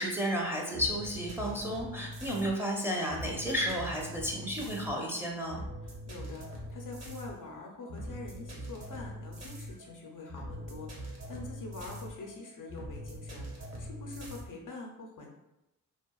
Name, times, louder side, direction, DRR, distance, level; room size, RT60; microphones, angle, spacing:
voice 1, 0.0-5.6, equal, 5° right, -2 dB, 0.6 m, -32 dB
sound 1, 0.7-14.4, equal, 40° right, 0.9 m, -43 dB
voice 2, 1.7-2.1 5.8-15.3, left 3 dB, 50° left, 0 dB, 0.6 m, -45 dB
2.8 x 2.4 x 2.3 m, 0.92 s
supercardioid pair, 50°, 43 cm